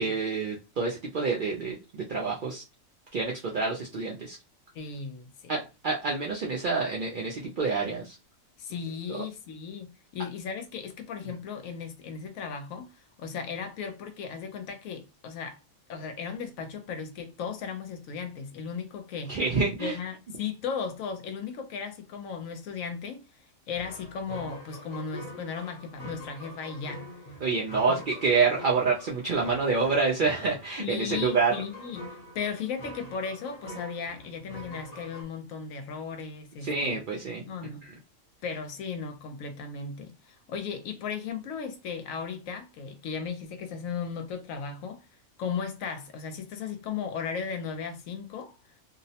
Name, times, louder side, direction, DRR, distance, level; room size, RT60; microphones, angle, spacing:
voice 1, 0.0-2.6 3.1-4.4 5.5-8.2 9.1-9.2 11.3-11.4 19.3-20.0 27.4-31.6 36.6-37.4 37.8-37.9, right 4 dB, 65° right, 0.5 m, -27 dB
voice 2, 4.7-5.6 8.6-15.6 15.9-19.4 19.8-23.2 23.7-27.1 27.9-28.0 30.8-32.1 32.3-37.0 37.5-37.8 38.4-45.0 45.4-48.5, left 6 dB, 80° left, 1.0 m, -36 dB
sound 1, 23.7-35.2, equal, 40° left, 0.7 m, -44 dB
2.6 x 2.0 x 2.7 m
omnidirectional pair, 1.4 m